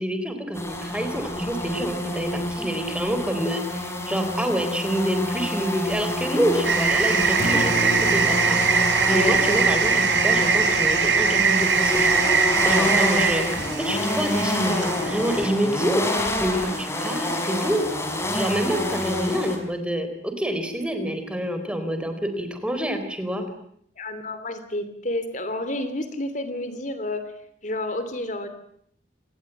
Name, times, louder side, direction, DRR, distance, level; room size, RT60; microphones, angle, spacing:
voice 1, 0.0-12.1 12.6-17.8 18.3-23.4, right 1 dB, 5° right, 7 dB, 4.0 m, -27 dB
sound 1, 0.5-19.6, left 1 dB, 15° left, 4.8 m, -27 dB
sound 2, 6.6-15.5, right 5 dB, 85° right, 3.6 m, -22 dB
Acoustic guitar, 7.3-15.4, right 2 dB, 45° right, 1.4 m, -37 dB
voice 2, 24.0-27.3 27.6-28.5, left 1 dB, 45° left, 10 dB, 3.0 m, -30 dB
27.5 x 19.5 x 9.1 m, 0.69 s
head